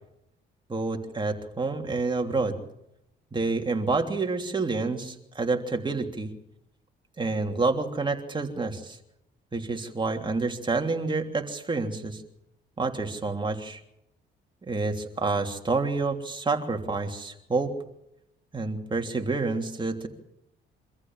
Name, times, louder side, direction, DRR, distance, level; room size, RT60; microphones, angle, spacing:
voice 1, 0.7-2.6 3.3-6.3 7.2-9.0 9.5-12.2 12.8-13.8 14.7-17.7 18.5-20.1, right 3 dB, 25° right, 3 dB, 3.1 m, -28 dB
25.0 x 14.5 x 7.5 m, 0.81 s
cardioid pair, 90°, 20 cm